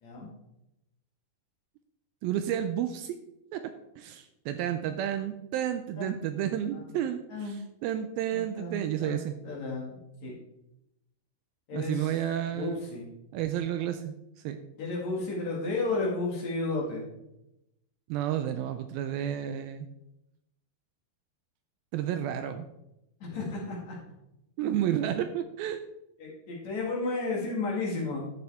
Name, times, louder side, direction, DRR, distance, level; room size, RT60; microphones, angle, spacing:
voice 1, 2.2-3.2 3.5-9.4 11.7-12.8 13.3-14.2 14.4-14.6 18.1-19.9 21.9-22.7 24.6-25.8, right 10 dB, 80° right, 9 dB, 2.2 m, -31 dB
voice 2, 6.0-7.0 7.3-7.6 8.3-9.2 9.4-10.3 11.7-12.1 12.5-13.1 14.7-17.0 23.2-24.0 26.2-28.2, left 3 dB, 50° left, -3 dB, 2.9 m, -33 dB
12.0 x 6.5 x 3.5 m, 0.87 s
omnidirectional pair, 4.5 m